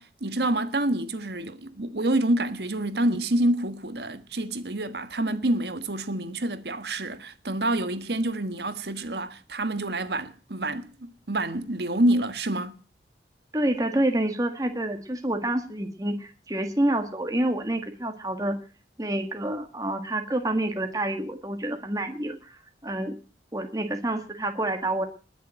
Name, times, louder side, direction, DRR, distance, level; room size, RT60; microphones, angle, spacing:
voice 1, 0.0-12.8, right 1 dB, 70° right, 1.5 m, -27 dB
voice 2, 13.5-18.6 19.0-23.2 23.5-25.1, right 1 dB, 20° right, 1.6 m, -28 dB
20.5 x 7.1 x 9.0 m
head